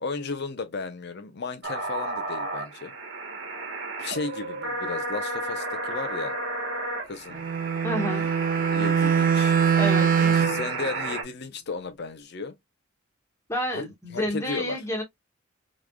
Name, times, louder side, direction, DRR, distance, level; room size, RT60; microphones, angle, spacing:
voice 1, 0.0-2.9 4.0-6.4 7.0-7.4 8.7-9.6 10.2-12.6 13.7-13.9 14.1-14.8, left 4 dB, 50° left, 0.6 m, -34 dB
sound 1, 1.6-11.2, right 2 dB, 55° right, 1.2 m, -32 dB
Bowed string instrument, 7.3-10.7, right 7 dB, 40° right, 0.5 m, -23 dB
voice 2, 7.8-8.3 9.8-10.2 13.5-15.0, equal, 15° left, 1.4 m, -29 dB
3.7 x 3.1 x 2.2 m
head